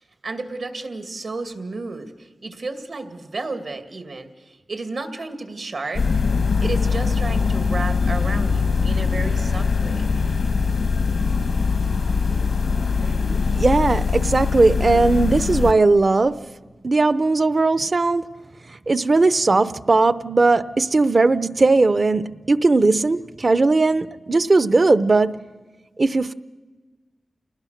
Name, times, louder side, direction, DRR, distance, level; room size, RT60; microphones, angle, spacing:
voice 1, 0.2-6.1 6.6-10.0, right 3 dB, 80° right, 2.4 m, -32 dB
sound 1, 5.9-15.7, left 5 dB, 90° left, 1.7 m, -22 dB
voice 2, 13.6-16.5 16.8-18.3 18.9-25.4 26.0-26.3, right 3 dB, 50° right, 0.7 m, -18 dB
28.5 x 19.5 x 6.6 m
cardioid pair, 60°, 0 cm